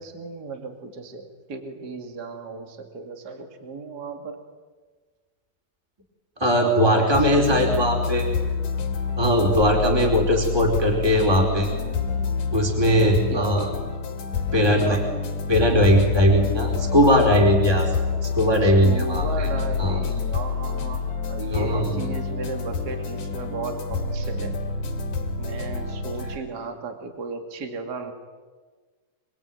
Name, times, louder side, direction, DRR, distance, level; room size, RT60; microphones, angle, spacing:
voice 1, 0.0-4.4 6.5-7.5 13.3-13.9 18.6-24.6 25.4-28.1, right 4 dB, 35° right, 5 dB, 2.8 m, -35 dB
voice 2, 6.4-8.3 9.2-11.7 12.5-13.7 14.5-15.0 15.5-17.9 18.2-19.5 19.8-20.0 21.5-22.0, equal, 10° right, 1 dB, 4.2 m, -20 dB
sound 1, 7.1-26.3, left 5 dB, 85° left, 3.7 m, -27 dB
27.0 x 22.5 x 9.3 m, 1.4 s
omnidirectional pair, 3.4 m